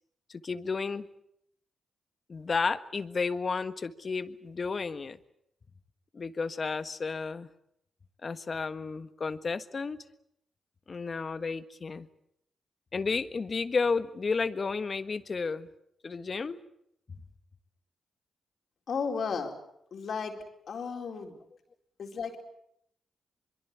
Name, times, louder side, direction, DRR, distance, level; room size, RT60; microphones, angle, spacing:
voice 1, 0.3-1.1 2.3-5.2 6.1-7.5 8.2-10.0 10.9-12.1 12.9-15.7 16.0-16.6, left 4 dB, 50° left, 11 dB, 1.5 m, -32 dB
voice 2, 18.9-19.5 19.9-20.3 20.7-21.4 22.0-22.4, left 5 dB, 65° left, 3 dB, 4.4 m, -34 dB
23.5 x 23.0 x 8.4 m, 0.75 s
supercardioid pair, 50°, 0 cm